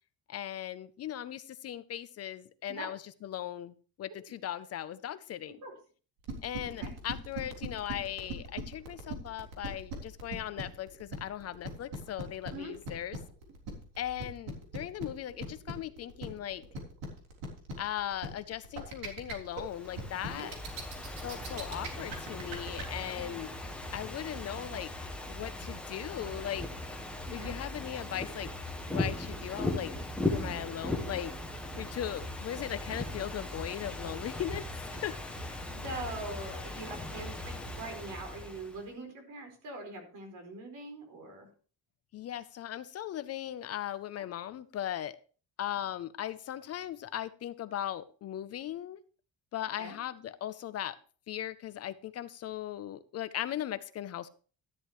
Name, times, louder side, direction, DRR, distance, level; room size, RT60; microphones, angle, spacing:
voice 1, 0.3-5.6 6.4-13.2 14.0-16.6 17.8-20.5 21.2-23.5 23.9-24.9 25.3-26.7 27.3-28.5 28.9-29.9 30.3-31.3 31.8-35.6 42.1-45.2 45.6-49.0 49.5-51.0 51.3-54.3, left 11 dB, 45° left, 14 dB, 0.6 m, -38 dB
sound 1, 6.2-22.8, right 2 dB, 80° right, 3.6 m, -39 dB
Ocean / Fireworks, 19.5-38.8, left 1 dB, 5° left, 1.3 m, -38 dB
voice 2, 35.8-41.5 49.8-49.9, right 2 dB, 55° right, 4 dB, 4.7 m, -43 dB
13.0 x 11.0 x 3.1 m, 0.38 s
cardioid pair, 180°, 36 cm